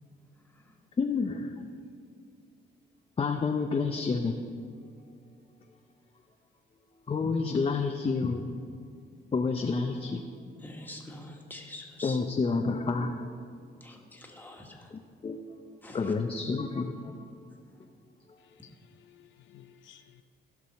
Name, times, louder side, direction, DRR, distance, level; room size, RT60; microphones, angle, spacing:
voice 1, 1.0-1.5 3.2-4.4 7.1-8.5 9.3-10.2 12.0-13.3 14.9-15.6 15.9-17.1, left 4 dB, 30° left, 4 dB, 0.6 m, -29 dB
voice 2, 10.6-12.2 13.8-14.9 15.8-16.1, left 1 dB, 10° left, 0 dB, 1.7 m, -45 dB
voice 3, 18.6-20.2, left 10 dB, 70° left, 8 dB, 0.5 m, -56 dB
16.5 x 6.1 x 4.3 m, 2.3 s
cardioid pair, 90°, 20 cm